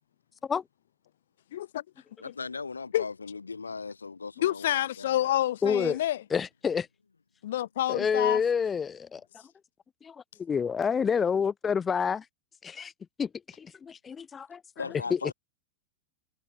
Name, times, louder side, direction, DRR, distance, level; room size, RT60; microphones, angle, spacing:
voice 1, 1.5-1.8 2.2-2.3 2.9-3.0 4.4-6.2 7.4-8.4 14.8-14.9, left 13 dB, 60° left, 0.7 m, -28 dB
voice 2, 2.2-5.2 14.8-15.3, left 4 dB, 75° left, 1.3 m, -38 dB
voice 3, 5.6-6.0 6.3-6.9 7.9-9.2 10.0-12.2 12.6-12.9 13.2-13.3 13.6-14.6 15.1-15.3, left 6 dB, 20° left, 0.6 m, -28 dB
figure-of-eight pair, 90°, 0 cm